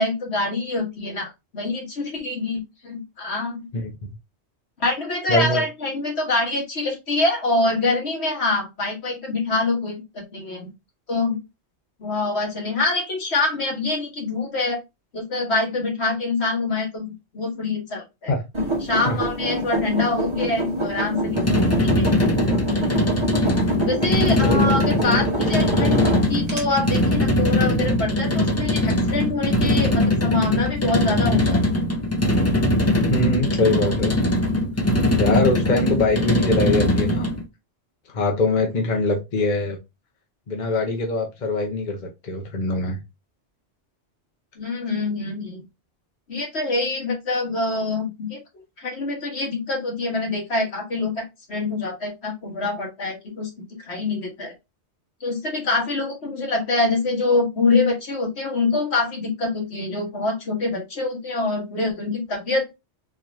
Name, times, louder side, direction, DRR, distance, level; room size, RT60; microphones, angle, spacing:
voice 1, 0.0-3.7 4.8-10.7 11.1-11.4 12.0-14.8 15.1-18.3 18.8-22.6 23.8-31.6 44.6-45.6 46.3-48.4 48.8-53.5 53.9-54.5 55.2-62.7, left 3 dB, 70° left, 0 dB, 1.6 m, -25 dB
voice 2, 3.7-4.1 5.3-5.6 18.3-18.4 19.1-19.2 24.4-24.8 33.1-34.2 34.8-34.9 35.2-37.3 38.1-39.8 40.5-43.0, left 2 dB, 45° left, 2 dB, 0.8 m, -23 dB
sound 1, 18.5-26.6, equal, 25° right, 1.2 m, -26 dB
sound 2, 21.3-37.4, left 1 dB, 20° left, 0.4 m, -21 dB
4.0 x 3.1 x 2.6 m, 0.23 s
omnidirectional pair, 1.2 m